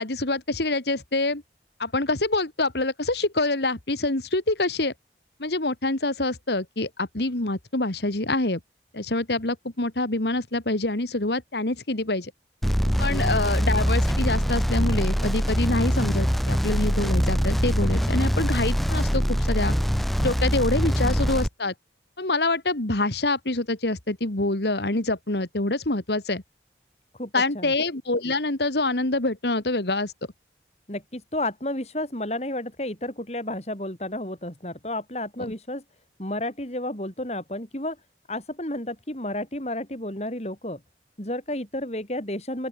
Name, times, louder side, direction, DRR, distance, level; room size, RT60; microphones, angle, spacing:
voice 1, 0.0-1.4 1.8-4.9 5.4-8.6 8.9-12.3 13.0-19.7 20.2-21.7 22.2-26.4 27.3-30.1, left 2 dB, 70° left, 2.2 m, -26 dB
sound 1, 12.6-21.5, equal, ahead, 1.3 m, -23 dB
voice 2, 27.2-27.7 30.9-35.8 36.2-38.0 38.3-40.8 41.2-42.7, left 1 dB, 35° left, 4.8 m, -31 dB
open air
head